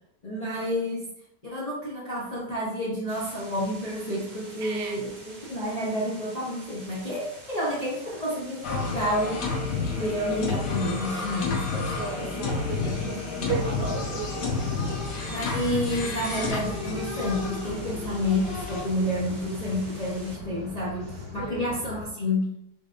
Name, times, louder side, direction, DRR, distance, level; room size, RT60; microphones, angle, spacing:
voice 1, 0.2-1.1 1.4-5.1 5.5-9.4 9.9-12.3 12.8-13.9 14.6-14.7 15.3-22.5, left 1 dB, 40° left, -7 dB, 0.5 m, -30 dB
sound 1, 3.1-20.4, right 2 dB, 40° right, 0.7 m, -47 dB
voice 2, 4.6-5.0 11.9-14.6 14.9-15.1 21.4-21.7, right 6 dB, 75° right, 3 dB, 1.2 m, -35 dB
sound 2, 8.6-18.8, left 4 dB, 60° left, 1.1 m, -30 dB
sound 3, 13.9-22.1, left 1 dB, 80° left, 1.7 m, -41 dB
3.7 x 3.5 x 2.5 m, 0.78 s
omnidirectional pair, 1.9 m